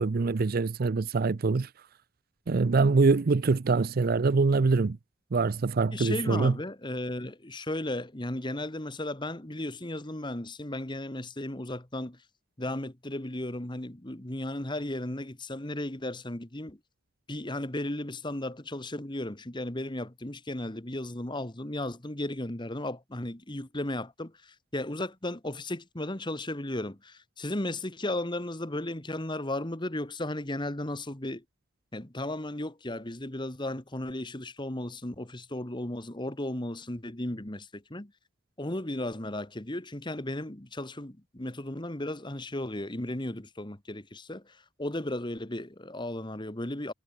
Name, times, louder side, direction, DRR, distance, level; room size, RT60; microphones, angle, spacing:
voice 1, 0.0-1.7 2.5-5.0 5.3-6.5, right 4 dB, 45° right, 0.5 m, -24 dB
voice 2, 5.9-12.2 12.6-16.8 17.3-31.4 31.9-38.1 38.6-46.9, left 1 dB, 20° left, 1.5 m, -35 dB
head